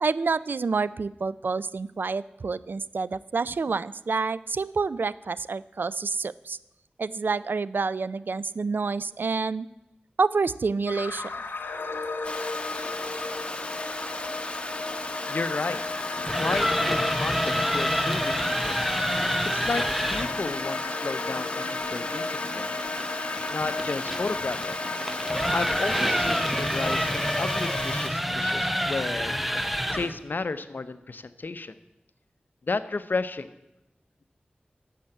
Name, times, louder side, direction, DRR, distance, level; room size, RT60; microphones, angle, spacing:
voice 1, 0.0-6.6 7.0-9.7 10.2-11.3, right 4 dB, 75° right, 18 dB, 0.4 m, -28 dB
sound 1, 10.9-28.0, left 3 dB, 90° left, 1.0 m, -34 dB
Water, 12.2-28.1, left 2 dB, 30° left, 1.2 m, -36 dB
voice 2, 15.3-15.8 16.3-18.8 19.5-22.7 23.5-24.8 25.5-29.3 29.9-31.8 32.7-33.5, left 3 dB, 70° left, 12 dB, 0.7 m, -32 dB
sound 2, 16.1-20.4 23.0-30.2, equal, 5° right, 0.9 m, -28 dB
11.5 x 7.6 x 7.9 m, 0.95 s
wide cardioid pair, 50°, 3 cm